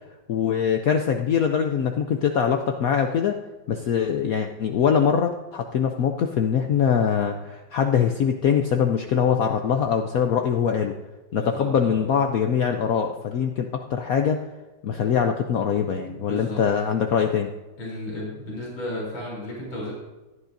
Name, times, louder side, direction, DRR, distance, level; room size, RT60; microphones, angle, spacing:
voice 1, 0.3-3.4 3.7-10.9 11.3-14.4 14.8-17.5, left 7 dB, 65° left, 5 dB, 0.9 m, -23 dB
voice 2, 11.4-12.0 16.1-16.6 17.8-19.9, left 1 dB, 85° left, -4 dB, 4.4 m, -34 dB
17.5 x 11.5 x 2.6 m, 1.1 s
omnidirectional pair, 2.1 m